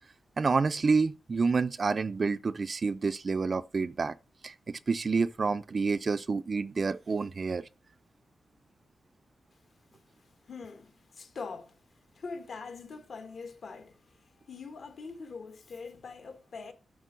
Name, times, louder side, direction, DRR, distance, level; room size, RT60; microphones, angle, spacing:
voice 1, 0.4-4.1 4.4-7.6, right 4 dB, 40° right, 0.4 m, -28 dB
voice 2, 9.9-11.8 12.1-16.7, left 4 dB, 65° left, 1.5 m, -44 dB
8.2 x 4.4 x 6.1 m
wide cardioid pair, 135°, 0 cm